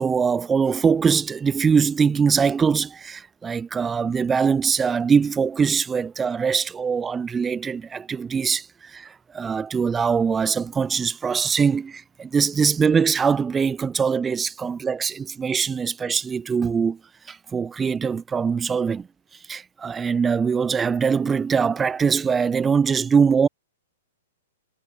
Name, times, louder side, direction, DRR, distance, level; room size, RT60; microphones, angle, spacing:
voice 1, 0.0-17.0 17.3-19.1 19.5-23.5, right 6 dB, 15° right, 4.5 m, -22 dB
figure-of-eight pair, 105°, 0 cm